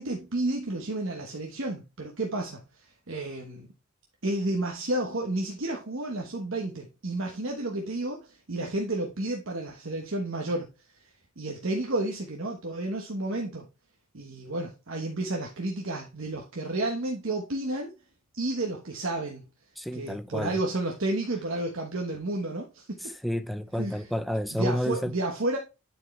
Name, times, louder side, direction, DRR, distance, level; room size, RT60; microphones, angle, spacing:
voice 1, 0.0-3.7 4.2-10.7 11.4-13.7 14.1-17.9 18.4-19.4 19.9-23.1 23.7-24.0 24.5-25.6, right 2 dB, 60° right, 1.1 m, -31 dB
voice 2, 19.8-20.6 23.0-25.1, equal, ahead, 0.4 m, -30 dB
10.5 x 4.7 x 3.2 m
head